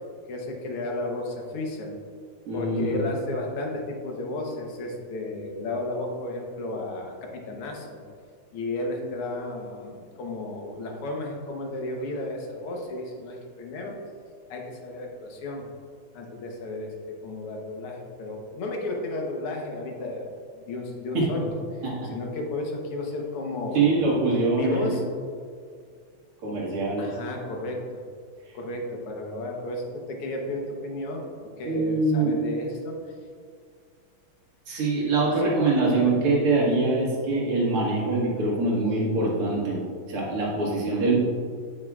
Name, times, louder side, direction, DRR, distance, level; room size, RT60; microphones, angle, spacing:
voice 1, 0.3-2.0 2.5-8.0 8.5-14.0 14.5-15.6 16.1-16.9 17.2-20.3 20.6-21.6 22.1-23.9 24.6-25.0 27.0-28.0 28.5-33.0 35.4-35.6 35.9-36.1 38.7-39.4, left 2 dB, 85° left, 1 dB, 2.1 m, -33 dB
voice 2, 2.5-3.0 21.1-21.3 21.8-21.9 23.7-24.9 26.4-27.1 31.7-32.3 34.7-39.8 40.1-41.2, right 3 dB, 85° right, -5 dB, 2.7 m, -24 dB
8.9 x 8.9 x 2.4 m, 2.1 s
omnidirectional pair, 2.4 m